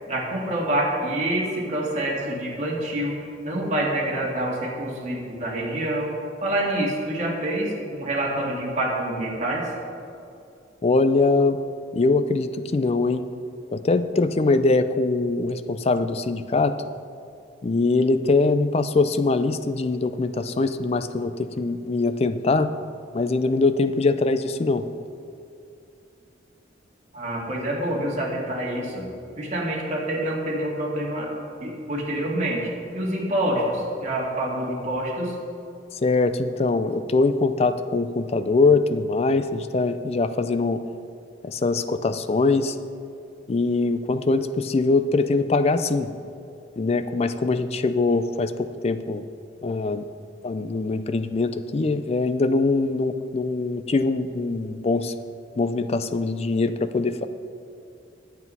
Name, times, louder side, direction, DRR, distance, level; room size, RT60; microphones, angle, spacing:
voice 1, 0.1-3.1 3.4-6.1 6.4-9.7 27.1-29.1 29.4-31.3 31.6-35.4, right 1 dB, 40° right, -3 dB, 2.1 m, -26 dB
voice 2, 10.8-11.6 11.9-13.2 13.7-16.8 17.6-22.7 23.1-24.9 36.0-40.8 41.4-42.8 43.5-46.1 46.8-49.2 49.6-50.0 50.4-55.1 55.6-57.3, left 3 dB, 35° left, 11 dB, 0.4 m, -22 dB
9.4 x 8.0 x 5.5 m, 2.6 s
head